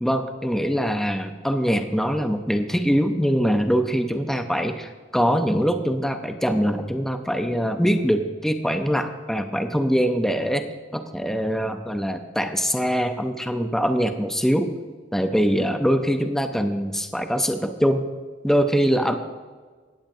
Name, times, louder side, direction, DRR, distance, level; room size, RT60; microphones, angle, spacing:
voice 1, 0.0-10.7 10.9-14.7 15.1-18.1 18.4-19.2, equal, ahead, 6 dB, 0.6 m, -23 dB
17.5 x 8.6 x 2.7 m, 1.4 s
head